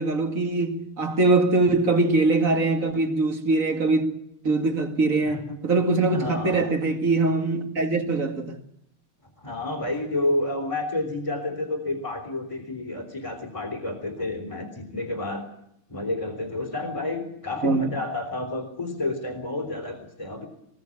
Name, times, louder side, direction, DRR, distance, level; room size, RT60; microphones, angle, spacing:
voice 1, 0.0-4.1 4.4-8.6 17.6-17.9, right 3 dB, 40° right, 2.5 m, -22 dB
voice 2, 5.3-5.6 6.1-6.7 9.4-15.5 15.9-20.5, left 2 dB, 15° left, 3.6 m, -30 dB
22.0 x 17.5 x 8.5 m
omnidirectional pair, 2.3 m